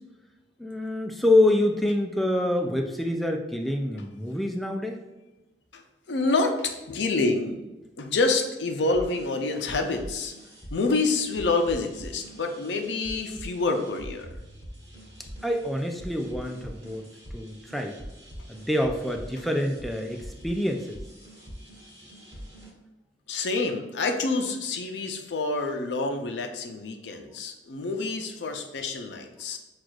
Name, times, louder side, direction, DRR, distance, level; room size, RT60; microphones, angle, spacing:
voice 1, 0.6-5.0 15.4-17.0 17.3-18.0 18.5-21.0, left 1 dB, ahead, 3 dB, 0.3 m, -26 dB
voice 2, 6.1-7.6 8.0-10.3 10.7-14.3 23.3-29.6, left 3 dB, 90° left, 4 dB, 0.5 m, -27 dB
sound 1, 8.8-22.7, equal, 35° right, 1.3 m, -44 dB
6.0 x 2.4 x 2.4 m, 1.1 s
head